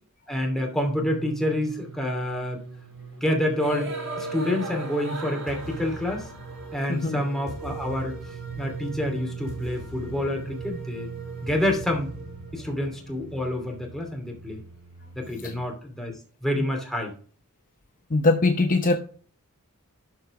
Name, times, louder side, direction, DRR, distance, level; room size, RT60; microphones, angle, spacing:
voice 1, 0.3-2.6 3.2-6.3 6.7-8.2 8.6-11.1 11.4-12.1 12.5-14.6 15.1-16.1 16.4-17.1, left 1 dB, ahead, 1 dB, 2.6 m, -28 dB
sound 1, 0.9-15.7, right 3 dB, 65° right, 3.7 m, -38 dB
voice 2, 6.9-7.2 15.4-15.5 16.5-16.6 18.1-19.0, left 3 dB, 40° left, 5 dB, 0.9 m, -22 dB
12.5 x 4.5 x 4.8 m, 0.43 s
head